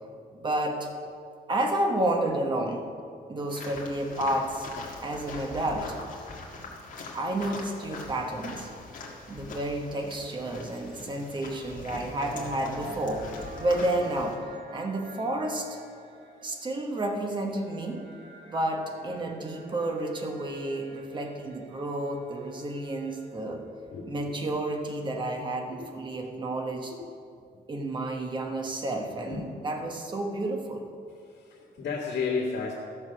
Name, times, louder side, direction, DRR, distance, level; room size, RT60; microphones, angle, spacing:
voice 1, 0.0-0.9 1.5-2.9 3.3-4.7 5.0-6.0 7.1-8.7 9.3-13.2 13.6-14.4 14.7-15.8 16.4-18.0 18.5-23.6 24.1-26.9 27.7-30.9, right 1 dB, 25° right, 3 dB, 1.1 m, -31 dB
sound 1, 3.5-14.3, left 3 dB, 45° left, 1.9 m, -42 dB
sound 2, 12.2-23.6, right 2 dB, 80° right, 1.4 m, -46 dB
voice 2, 23.9-24.3 25.7-25.9 27.0-27.1 27.5-27.6 29.3-29.4 31.1-32.7, left 5 dB, 75° left, -9 dB, 2.3 m, -33 dB
14.0 x 6.6 x 6.1 m, 2.4 s
wide cardioid pair, 180°, 18 cm